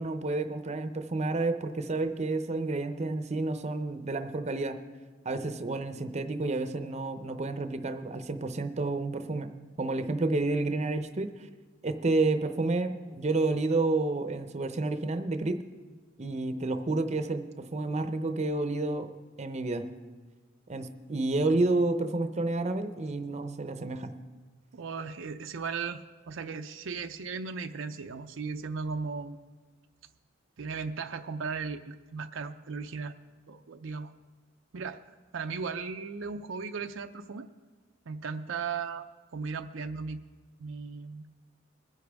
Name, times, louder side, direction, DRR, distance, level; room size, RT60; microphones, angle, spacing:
voice 1, 0.0-4.8 5.2-11.3 11.8-15.6 16.2-19.9 20.7-24.2, right 2 dB, 35° right, 9 dB, 0.6 m, -30 dB
voice 2, 24.7-29.5 30.6-33.1 33.5-34.1 34.7-35.0 35.3-37.5 38.1-39.1 39.3-40.2 40.6-41.2, right 5 dB, 75° right, 7 dB, 0.5 m, -36 dB
21.5 x 10.0 x 3.5 m, 1.4 s
head